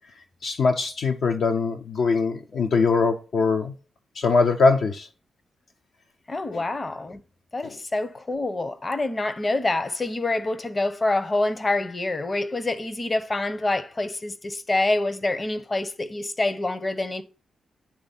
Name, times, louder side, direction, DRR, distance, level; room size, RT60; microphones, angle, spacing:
voice 1, 0.4-3.7 4.2-5.1 6.5-6.7 7.6-7.7, left 4 dB, 70° left, 0.5 m, -22 dB
voice 2, 6.3-7.2 7.5-17.2, left 2 dB, 35° left, 0.8 m, -26 dB
9.6 x 3.4 x 4.0 m
supercardioid pair, 45°, 0 cm